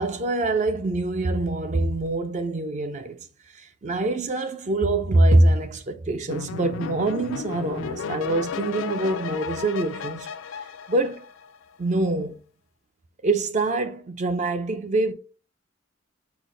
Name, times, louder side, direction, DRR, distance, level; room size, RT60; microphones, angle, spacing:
voice 1, 0.0-3.2 3.6-10.3 10.9-11.3 11.8-12.4 13.2-15.1, right 2 dB, 35° right, 0.4 m, -24 dB
sound 1, 6.3-11.7, left 6 dB, 75° left, 0.3 m, -34 dB
4.8 x 2.0 x 3.8 m
head